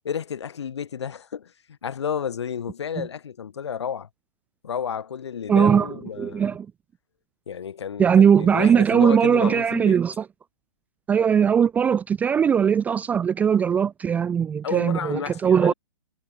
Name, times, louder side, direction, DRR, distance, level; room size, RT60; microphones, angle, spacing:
voice 1, 0.0-1.5 1.8-4.1 4.6-6.5 7.5-10.0 14.6-15.7, left 7 dB, 60° left, 3.5 m, -31 dB
voice 2, 5.5-5.9 6.2-6.7 8.0-10.2 11.1-15.7, right 7 dB, 10° right, 0.5 m, -19 dB
figure-of-eight pair, 125°, 16 cm